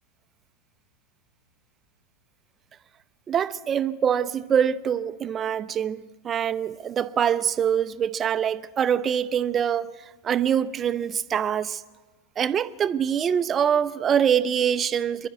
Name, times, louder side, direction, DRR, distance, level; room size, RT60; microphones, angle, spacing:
voice 1, 3.3-9.9 10.2-11.8 12.4-15.3, right 8 dB, 25° right, 0.6 m, -24 dB
25.0 x 11.5 x 9.5 m
figure-of-eight pair, 90°, 0 cm